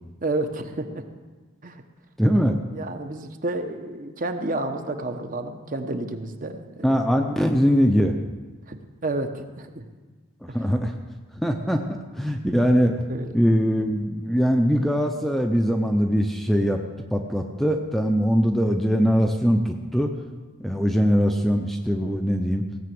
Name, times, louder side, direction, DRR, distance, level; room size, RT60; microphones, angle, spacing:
voice 1, 0.2-1.0 1.6-1.8 2.7-7.3 8.7-9.9 10.5-10.6 13.1-13.3, right 2 dB, 40° right, 7 dB, 1.0 m, -31 dB
voice 2, 2.2-2.6 6.8-8.2 10.5-10.9 11.4-11.8 12.1-12.9 13.3-16.8 17.1-20.1 20.6-22.6, equal, ahead, 4 dB, 0.6 m, -21 dB
17.0 x 6.8 x 7.8 m, 1.3 s
head